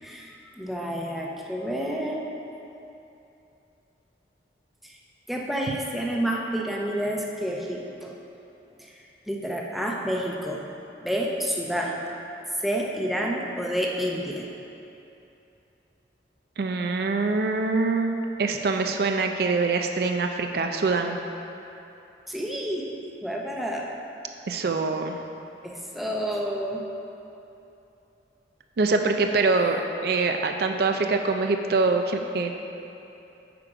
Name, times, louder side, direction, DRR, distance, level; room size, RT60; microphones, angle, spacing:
voice 1, 0.0-2.3 4.8-5.0 5.3-8.1 8.8-10.6 11.0-12.0 12.6-14.5 22.3-23.9 25.6-26.8, equal, ahead, -2 dB, 0.6 m, -29 dB
voice 2, 16.6-18.1 18.4-21.2 24.5-25.1 28.8-32.5, right 3 dB, 55° right, 5 dB, 0.4 m, -24 dB
8.4 x 5.1 x 4.9 m, 2.9 s
head